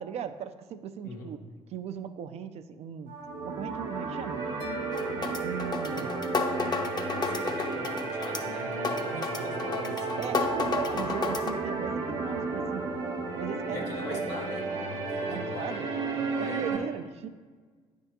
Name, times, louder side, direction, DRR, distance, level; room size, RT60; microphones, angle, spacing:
voice 1, 0.0-1.4 1.7-3.1 3.4-4.5 5.4-6.2 10.2-12.9 13.4-14.3 15.3-15.9 16.4-17.3, right 8 dB, 60° right, 10 dB, 0.4 m, -38 dB
sound 1, 3.1-16.8, right 3 dB, 90° right, 0.9 m, -33 dB
sound 2, 4.6-6.9, left 5 dB, 65° left, 1.6 m, -46 dB
sound 3, 4.9-11.5, left 4 dB, 35° left, 0.7 m, -32 dB
voice 2, 7.0-10.2 13.7-14.7 15.0-15.8 16.3-16.8, left 2 dB, 85° left, -1 dB, 1.1 m, -41 dB
9.5 x 3.4 x 2.9 m, 1.5 s
hypercardioid pair, 60°, 12 cm